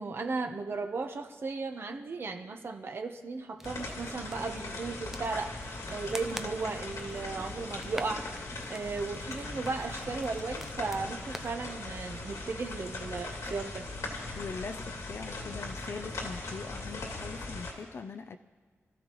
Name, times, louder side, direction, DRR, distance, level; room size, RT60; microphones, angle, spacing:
voice 1, 0.0-5.6 5.9-8.3 8.7-13.9, right 4 dB, 50° right, 6 dB, 1.0 m, -36 dB
sound 1, 3.6-17.7, left 2 dB, 90° left, 2.6 m, -40 dB
sound 2, 3.6-11.5, right 1 dB, 5° right, 0.6 m, -47 dB
voice 2, 14.3-18.4, left 4 dB, 55° left, 8 dB, 0.5 m, -41 dB
27.0 x 14.0 x 3.1 m, 1.5 s
wide cardioid pair, 145°, 5 cm